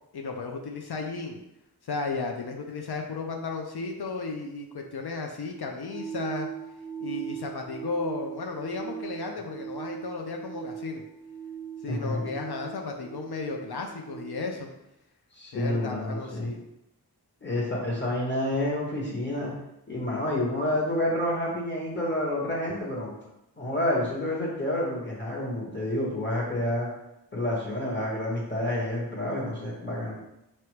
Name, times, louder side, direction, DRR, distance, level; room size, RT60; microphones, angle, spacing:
voice 1, 0.1-1.4 1.8-6.5 7.0-11.0 11.8-14.7 15.5-16.6, left 4 dB, 70° left, 3 dB, 0.6 m, -34 dB
sound 1, 5.9-14.6, right 8 dB, 20° right, 0.5 m, -39 dB
voice 2, 11.9-12.4 15.3-16.5 17.4-19.5 19.9-23.1 23.6-26.9 27.3-30.1, left 1 dB, 30° left, -4 dB, 1.5 m, -29 dB
4.5 x 2.9 x 3.2 m, 0.87 s
wide cardioid pair, 65°, 40 cm